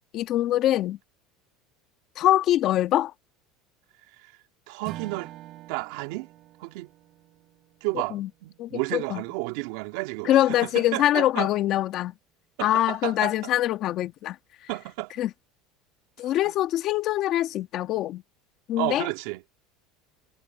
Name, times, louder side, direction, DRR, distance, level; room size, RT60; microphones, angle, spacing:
voice 1, 0.1-1.0 2.2-3.1 8.1-8.3 8.6-9.2 10.2-12.1 12.6-14.4 15.2-15.3 16.2-18.2 18.7-19.1, left 13 dB, 45° left, 1.6 m, -24 dB
voice 2, 4.7-5.3 5.7-6.3 6.6-6.9 7.8-11.5 12.6-13.3 14.7-15.1 16.4-16.5 18.8-19.4, right 23 dB, 70° right, 2.7 m, -32 dB
Strum, 4.8-9.4, right 15 dB, 50° right, 4.5 m, -46 dB
supercardioid pair, 135°, 0 cm